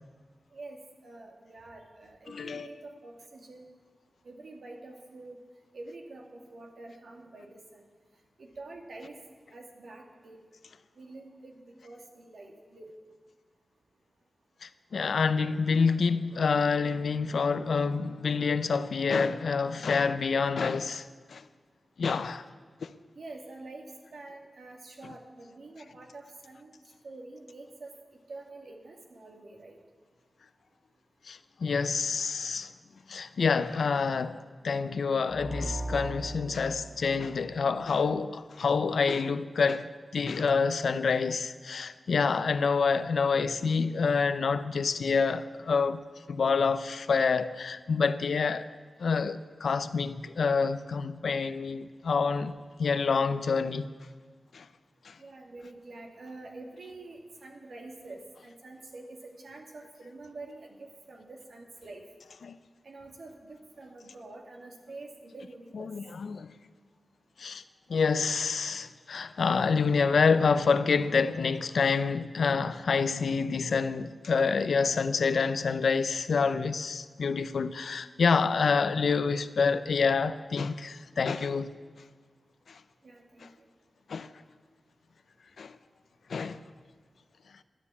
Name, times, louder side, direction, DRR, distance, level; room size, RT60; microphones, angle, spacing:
voice 1, 0.5-3.7 4.2-5.4 5.7-7.8 8.4-9.2 9.5-10.4 11.0-12.9 23.1-23.9 24.1-26.7 27.0-27.9 28.3-29.8 55.2-62.1 62.8-65.9 83.0-83.7, right 2 dB, 80° right, 2.3 m, -47 dB
voice 2, 2.3-2.7 14.6-21.4 22.0-22.5 22.8-22.9 31.3-32.7 33.1-34.4 34.6-46.0 46.3-48.7 49.0-53.9 54.5-54.7 55.0-55.2 62.4-62.6 65.7-66.5 67.4-67.6 67.9-81.7 82.7-82.8 84.1-84.3 85.6-85.8 86.3-86.6, left 5 dB, 85° left, 0.6 m, -27 dB
sound 1, 35.3-38.1, right 1 dB, 10° right, 1.9 m, -38 dB
12.5 x 9.5 x 8.3 m
cardioid pair, 65°, 0 cm